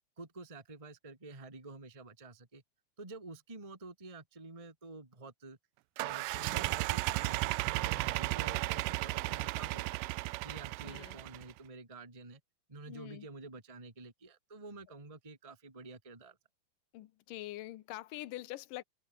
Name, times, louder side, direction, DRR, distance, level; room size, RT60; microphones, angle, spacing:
voice 1, 0.2-2.6 3.0-5.6 6.0-10.0 10.4-12.4 12.7-16.4, right 3 dB, 10° right, 2.1 m, -49 dB
sound 1, 6.0-11.5, right 21 dB, 80° right, 2.0 m, -34 dB
voice 2, 10.8-11.2 12.9-13.3 16.9-18.8, left 16 dB, 70° left, 2.5 m, -44 dB
omnidirectional pair, 4.3 m